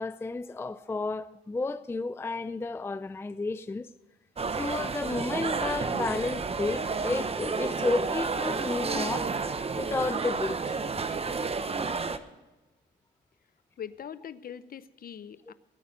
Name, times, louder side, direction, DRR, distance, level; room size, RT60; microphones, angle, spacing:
voice 1, 0.0-3.9 4.6-9.3 9.8-10.8, left 3 dB, 10° left, 0.4 m, -32 dB
sound 1, 4.4-12.2, right 4 dB, 30° right, 0.9 m, -31 dB
voice 2, 13.8-15.5, left 8 dB, 45° left, 0.8 m, -42 dB
18.5 x 8.7 x 6.5 m
cardioid pair, 90°, 20 cm